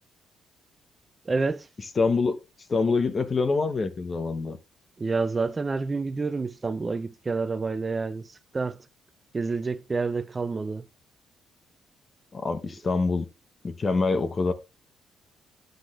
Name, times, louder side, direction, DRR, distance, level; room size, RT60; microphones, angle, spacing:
voice 1, 1.3-1.7 5.0-8.3 8.5-8.8 9.3-10.8, right 4 dB, 25° right, 0.5 m, -28 dB
voice 2, 2.0-2.4 2.7-4.6 12.3-13.3 13.6-14.5, left 4 dB, 35° left, 0.9 m, -25 dB
10.5 x 7.9 x 2.4 m
cardioid pair, 90°, 0 cm